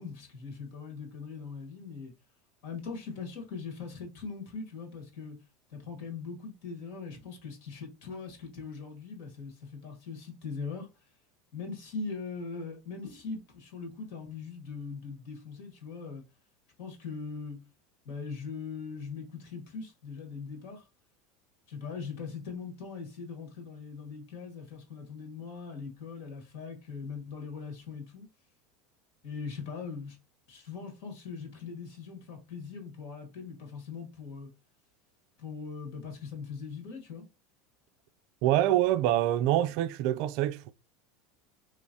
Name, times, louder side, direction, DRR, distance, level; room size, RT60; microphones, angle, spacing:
voice 1, 0.0-2.1 2.6-5.4 5.7-10.9 11.5-16.2 16.8-17.6 18.0-20.9 21.7-28.3 29.2-30.2 30.5-34.5 35.4-37.2, left 5 dB, 70° left, 1.6 m, -41 dB
voice 2, 38.4-40.7, right 13 dB, 55° right, 0.3 m, -25 dB
3.4 x 3.0 x 2.6 m
supercardioid pair, 155°, 0 cm